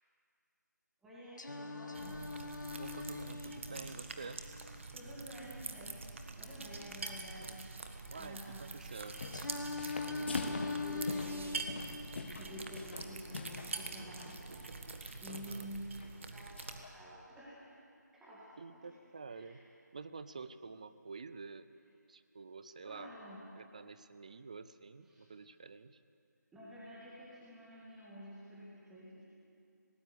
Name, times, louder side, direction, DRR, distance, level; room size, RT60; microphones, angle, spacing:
voice 1, 1.0-2.2 4.9-9.0 9.3-9.4 10.1-11.5 12.4-14.4 15.2-17.7 18.1-18.5 18.8-18.9 19.3-19.6 22.8-23.4 25.1-25.3 26.5-29.2, equal, 5° right, -9 dB, 2.4 m, -50 dB
Singing, 1.4-5.4 9.3-13.4, left 3 dB, 80° left, 1.9 m, -43 dB
sound 1, 1.9-16.8, right 3 dB, 40° right, 1.5 m, -46 dB
voice 2, 2.7-4.4 7.3-7.7 8.1-9.2 15.2-15.7 18.6-19.7 19.9-21.7 22.1-23.1 23.6-26.0, right 4 dB, 25° right, 13 dB, 0.5 m, -49 dB
sound 2, 8.9-9.5 9.8-13.7 14.1-14.4 15.0-15.5 16.0-16.1 16.6-16.9, left 3 dB, 35° left, 1.4 m, -43 dB
19.0 x 18.5 x 8.0 m, 2.4 s
figure-of-eight pair, 165°, 10 cm